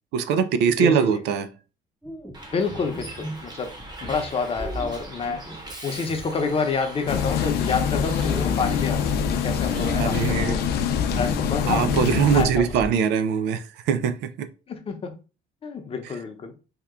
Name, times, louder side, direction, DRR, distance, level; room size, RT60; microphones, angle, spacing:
voice 1, 0.1-1.5 9.9-10.6 11.7-14.5, right 7 dB, 85° right, 0.5 m, -22 dB
voice 2, 0.8-1.2 2.5-3.7 4.0-5.4 5.8-10.6 11.2-11.9 12.3-12.7 14.7-15.1 15.6-16.5, left 5 dB, 35° left, 0.7 m, -28 dB
sound 1, 2.0-7.0 7.3-9.2 9.7-10.5 10.8-10.9 11.6-12.5, equal, ahead, 0.6 m, -37 dB
Bus, 2.3-12.9, equal, 25° right, 0.9 m, -37 dB
sound 2, 7.1-12.5, left 8 dB, 70° left, 0.5 m, -25 dB
2.8 x 2.3 x 3.6 m
cardioid pair, 110°, 17 cm